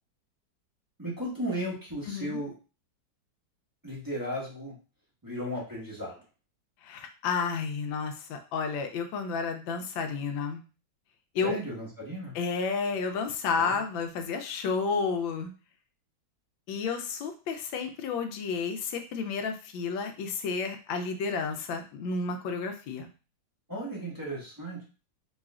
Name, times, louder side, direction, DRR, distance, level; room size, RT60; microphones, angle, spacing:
voice 1, 1.0-2.5 3.8-4.7 5.2-6.2 11.4-12.3 13.6-13.8 23.7-24.8, equal, 15° right, -6 dB, 0.9 m, -35 dB
voice 2, 2.1-2.4 6.8-10.6 11.3-11.6 12.3-15.5 16.7-23.1, left 5 dB, 80° left, 6 dB, 1.3 m, -31 dB
4.1 x 3.1 x 2.4 m, 0.34 s
omnidirectional pair, 2.1 m